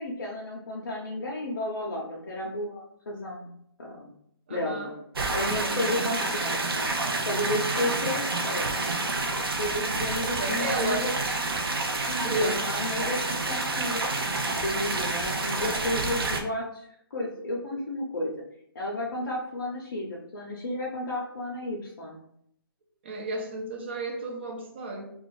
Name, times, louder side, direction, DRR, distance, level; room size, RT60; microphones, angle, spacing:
voice 1, 0.0-3.5 3.8-4.2 4.5-4.9 5.3-8.7 9.6-11.1 12.1-13.2 13.5-14.1 14.5-18.3 18.7-22.2, left 1 dB, 55° left, 0.6 m, -32 dB
voice 2, 4.5-4.9 5.5-6.0 10.4-11.1 12.2-12.6 23.0-25.1, right 2 dB, 30° right, 0.5 m, -32 dB
sound 1, 5.2-16.4, right 3 dB, 70° right, 0.6 m, -29 dB
2.4 x 2.3 x 3.8 m
hypercardioid pair, 170°, 13 cm